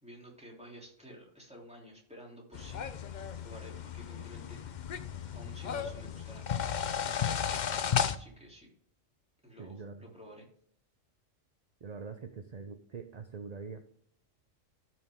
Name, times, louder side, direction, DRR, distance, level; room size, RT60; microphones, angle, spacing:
voice 1, 0.0-2.9 3.3-4.6 5.3-6.4 8.1-8.7 9.4-10.5, equal, 5° right, -2 dB, 3.0 m, -51 dB
sound 1, 2.5-8.2, left 8 dB, 50° left, 0.5 m, -34 dB
voice 2, 9.6-10.0 11.8-13.8, right 5 dB, 45° right, 7 dB, 0.6 m, -44 dB
13.0 x 6.1 x 3.6 m, 0.62 s
omnidirectional pair, 1.3 m